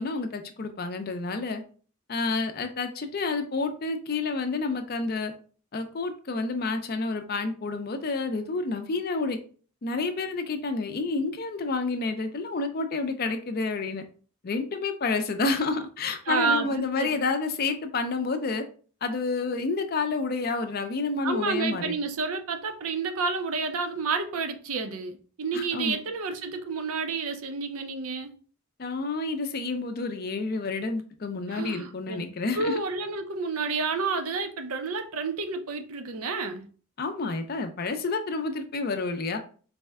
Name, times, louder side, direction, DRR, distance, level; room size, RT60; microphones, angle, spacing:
voice 1, 0.0-1.6 2.1-5.3 5.7-9.4 9.8-14.0 14.4-18.6 19.0-21.9 25.5-26.0 28.8-32.8 37.0-39.4, left 3 dB, 45° left, 0.4 m, -29 dB
voice 2, 16.3-17.2 21.2-28.3 31.5-32.3 32.6-36.7, right 4 dB, 75° right, 0.6 m, -30 dB
4.1 x 2.2 x 3.4 m
head